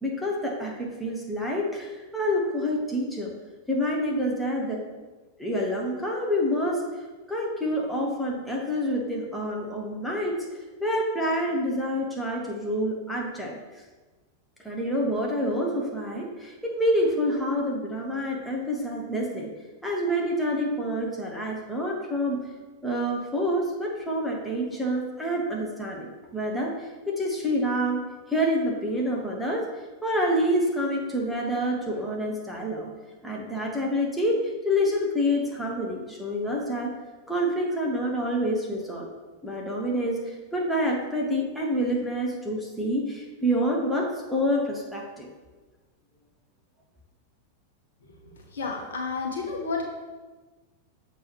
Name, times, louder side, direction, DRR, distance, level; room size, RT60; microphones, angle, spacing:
voice 1, 0.0-3.3 3.7-4.8 5.4-6.9 7.3-13.6 14.6-19.5 19.8-22.4 22.8-29.7 30.0-32.9 33.2-36.9 37.3-39.1 39.4-45.3, equal, 5° left, -2 dB, 1.2 m, -27 dB
voice 2, 48.5-49.8, left 4 dB, 65° left, 0 dB, 1.1 m, -30 dB
6.9 x 3.0 x 5.9 m, 1.3 s
figure-of-eight pair, 90°, 0 cm